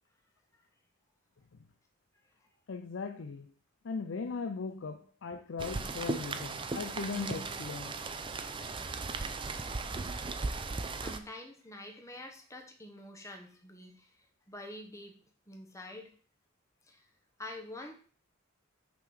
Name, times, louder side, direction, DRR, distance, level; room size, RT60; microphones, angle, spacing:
voice 1, 2.7-3.5 3.8-8.0, left 4 dB, 60° left, 0.5 m, -38 dB
Rain, 5.6-11.2, right 3 dB, 25° right, 0.4 m, -37 dB
voice 2, 10.9-14.1 14.5-15.2 15.5-16.1 16.9-17.0 17.4-17.9, left 1 dB, 15° left, 1.1 m, -46 dB
5.9 x 3.8 x 6.0 m
head